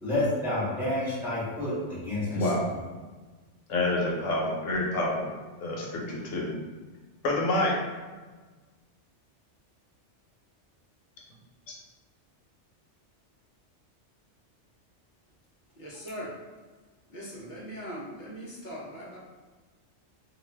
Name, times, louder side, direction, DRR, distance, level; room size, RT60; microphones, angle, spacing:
voice 1, 0.0-2.5, left 1 dB, ahead, -10 dB, 0.9 m, -29 dB
voice 2, 2.3-2.6 3.7-5.3 5.6-6.5 7.2-7.7, left 2 dB, 90° left, -2 dB, 1.0 m, -27 dB
voice 3, 15.8-16.3 17.1-19.2, equal, 50° left, -5 dB, 0.8 m, -40 dB
2.5 x 2.3 x 3.2 m, 1.3 s
omnidirectional pair, 1.2 m